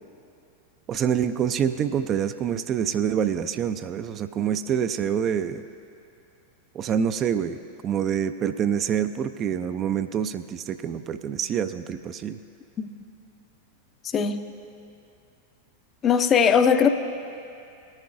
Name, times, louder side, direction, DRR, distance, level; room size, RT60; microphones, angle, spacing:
voice 1, 0.9-5.6 6.7-12.4, right 8 dB, 30° right, 10 dB, 0.3 m, -26 dB
voice 2, 14.1-14.4 16.0-16.9, left 7 dB, 25° left, 9 dB, 0.5 m, -19 dB
18.5 x 10.5 x 2.5 m, 2.6 s
figure-of-eight pair, 90°, 0 cm